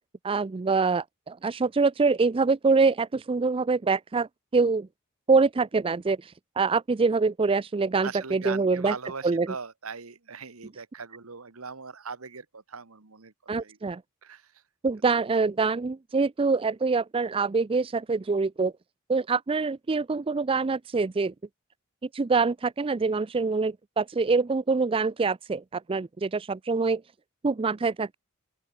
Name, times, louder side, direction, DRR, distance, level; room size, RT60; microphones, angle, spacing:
voice 1, 0.2-4.9 5.3-8.9 9.2-9.5 13.5-14.0 14.8-18.7 19.1-21.3 22.1-27.0 27.4-28.2, right 4 dB, 25° right, 0.4 m, -25 dB
voice 2, 8.0-13.3 13.6-13.8 14.2-14.6, right 5 dB, 85° right, 1.6 m, -40 dB
open air
head